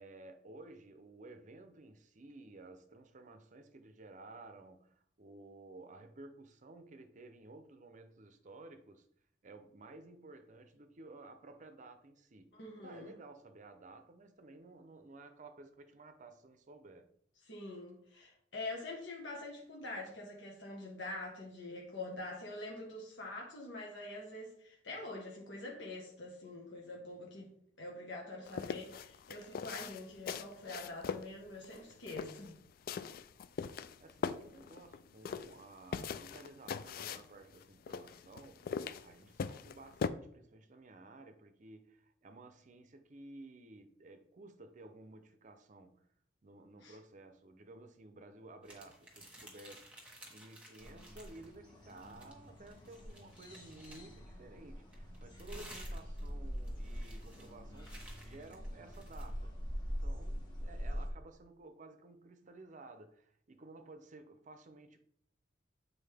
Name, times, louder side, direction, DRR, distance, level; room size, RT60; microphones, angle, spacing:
voice 1, 0.0-9.1 9.4-17.1 34.0-46.0 46.4-49.9 50.3-65.0, right 2 dB, 45° right, 0.6 m, -54 dB
voice 2, 12.5-13.1 17.4-27.5 27.8-32.5 46.8-47.0 55.5-55.7, left 2 dB, 80° left, 1.3 m, -45 dB
sound 1, 28.4-40.1, left 6 dB, 55° left, 0.3 m, -41 dB
sound 2, 48.6-51.5 51.9-54.2 54.9-59.3, right 1 dB, 5° right, 1.5 m, -56 dB
sound 3, 50.8-61.1, equal, 25° left, 1.3 m, -43 dB
7.6 x 4.1 x 3.4 m
head